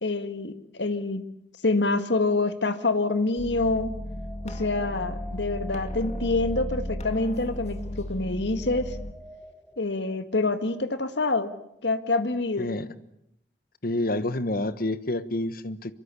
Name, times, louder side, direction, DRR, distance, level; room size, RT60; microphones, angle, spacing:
voice 1, 0.0-1.3 1.6-3.9 4.4-9.0 9.8-11.5 11.8-12.7, left 3 dB, 70° left, 10 dB, 1.8 m, -26 dB
sound 1, 3.4-9.1, left 1 dB, 40° left, 2.2 m, -35 dB
sound 2, 3.7-10.2, equal, ahead, 1.4 m, -48 dB
voice 2, 12.6-12.9 13.8-15.9, left 1 dB, 55° left, 13 dB, 1.4 m, -28 dB
26.0 x 24.0 x 8.4 m, 0.78 s
head